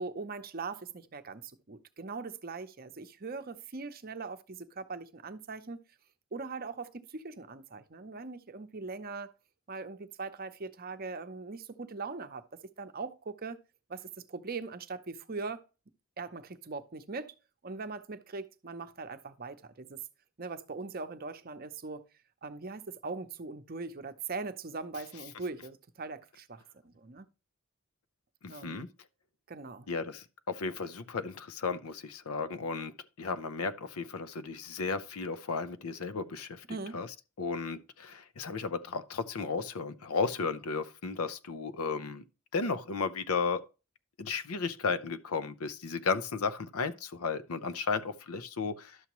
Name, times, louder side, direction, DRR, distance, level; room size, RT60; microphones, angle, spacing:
voice 1, 0.0-5.8 6.3-9.3 9.7-13.6 13.9-15.6 16.2-17.3 17.6-20.0 20.4-22.1 22.4-27.3 28.5-28.9 29.5-29.9 36.7-37.0, right 4 dB, 45° right, 0.7 m, -41 dB
voice 2, 28.4-28.9 29.9-37.1 37.4-42.2 42.5-43.6 44.2-49.0, left 4 dB, 85° left, 0.7 m, -34 dB
11.5 x 7.0 x 3.0 m
head